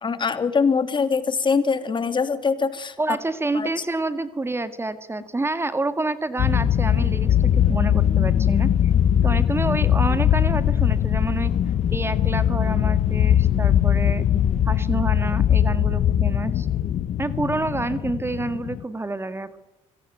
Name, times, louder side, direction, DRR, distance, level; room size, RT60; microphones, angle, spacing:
voice 1, 0.0-3.2 3.5-3.8, left 5 dB, 40° left, 10 dB, 2.7 m, -23 dB
voice 2, 3.0-8.9 9.2-11.5 11.9-14.2 14.7-16.7 17.2-19.6, right 2 dB, 20° right, 11 dB, 1.9 m, -28 dB
sound 1, 6.4-18.8, left 10 dB, 60° left, 0.9 m, -21 dB
25.5 x 17.0 x 9.3 m, 1.0 s
cardioid pair, 80°, 13 cm